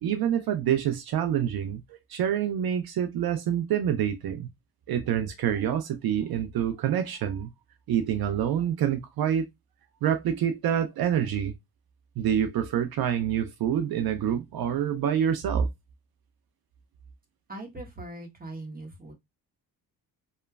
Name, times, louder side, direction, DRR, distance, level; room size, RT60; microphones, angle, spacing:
voice 1, 0.0-1.8 2.1-4.5 4.9-7.5 7.9-9.5 10.0-11.5 12.2-15.7, right 9 dB, 60° right, 0.5 m, -26 dB
voice 2, 17.5-19.1, right 2 dB, 20° right, 1.1 m, -40 dB
3.0 x 2.1 x 2.2 m
cardioid pair, 70°, 40 cm